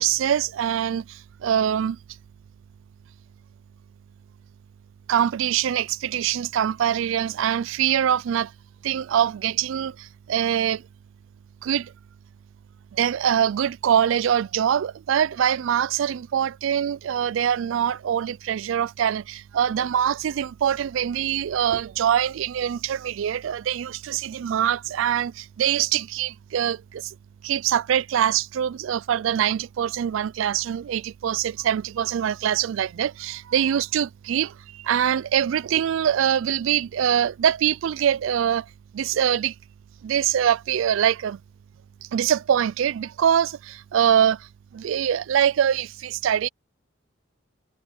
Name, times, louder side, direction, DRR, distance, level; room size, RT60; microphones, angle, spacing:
voice 1, 0.0-2.0 5.1-8.5 8.8-10.8 11.6-11.9 12.9-27.1 27.4-39.5 40.0-41.4 42.0-46.5, right 9 dB, 70° right, 0.3 m, -24 dB
head